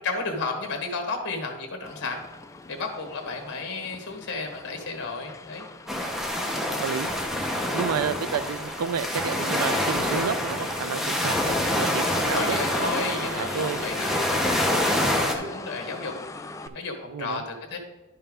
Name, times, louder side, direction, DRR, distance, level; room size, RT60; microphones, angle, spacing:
voice 1, 0.0-2.2 2.7-5.7 11.9-16.1 16.7-17.8, left 3 dB, 50° left, 3 dB, 1.2 m, -33 dB
Motor vehicle (road), 1.8-16.7, left 2 dB, 15° left, 0.3 m, -41 dB
sound 1, 5.9-15.3, left 1 dB, ahead, 0.7 m, -26 dB
voice 2, 6.8-7.1 7.7-12.6 13.3-13.8 16.7-16.8 17.1-17.4, right 7 dB, 85° right, 15 dB, 0.4 m, -30 dB
11.0 x 5.5 x 3.6 m, 1.2 s
head